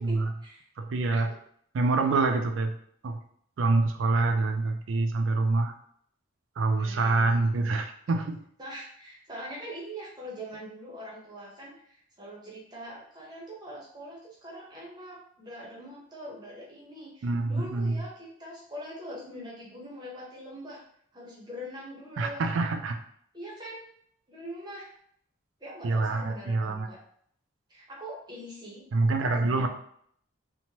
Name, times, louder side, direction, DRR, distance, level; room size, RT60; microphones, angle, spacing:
voice 1, 0.0-0.7 6.8-7.7 8.6-20.8 21.1-22.7 23.3-23.8 24.3-24.9 25.6-27.0 27.7-28.8 29.2-29.7, equal, 20° right, -4 dB, 0.7 m, -43 dB
voice 2, 0.8-1.4 1.7-2.7 3.0-3.2 3.6-5.7 6.6-8.4 17.2-18.0 22.2-23.0 25.8-26.9 28.9-29.7, right 3 dB, 70° right, 5 dB, 0.4 m, -26 dB
3.0 x 2.1 x 2.7 m, 0.65 s
head